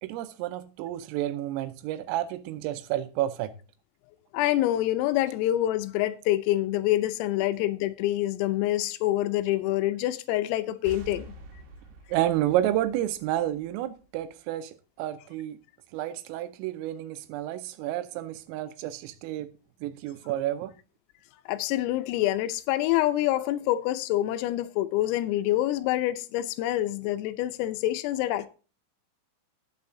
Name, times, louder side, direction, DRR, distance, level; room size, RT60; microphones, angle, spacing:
voice 1, 0.0-3.5 12.1-15.6 15.9-19.5 19.8-20.7, right 13 dB, 85° right, 3.3 m, -30 dB
voice 2, 4.3-11.3 21.5-28.5, left 14 dB, 85° left, 3.3 m, -26 dB
sound 1, 10.8-14.3, right 2 dB, 65° right, 3.0 m, -47 dB
18.5 x 7.0 x 2.7 m
omnidirectional pair, 6.0 m